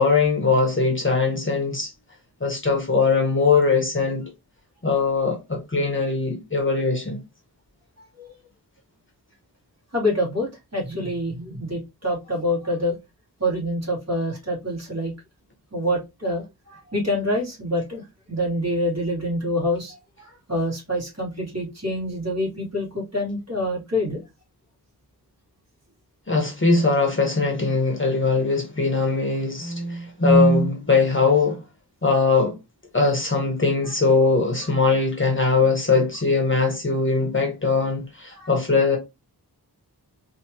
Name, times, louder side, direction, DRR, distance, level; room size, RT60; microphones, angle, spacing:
voice 1, 0.0-1.9 2.4-4.2 4.8-7.2 26.3-31.6 32.0-32.5 32.9-39.0, left 3 dB, 30° left, 1.2 m, -21 dB
voice 2, 9.9-12.9 13.4-15.1 15.7-18.0 18.3-20.0 20.5-24.2 38.4-38.5, left 1 dB, 40° right, 2.8 m, -26 dB
4.3 x 3.0 x 2.9 m
wide cardioid pair, 85°, 40 cm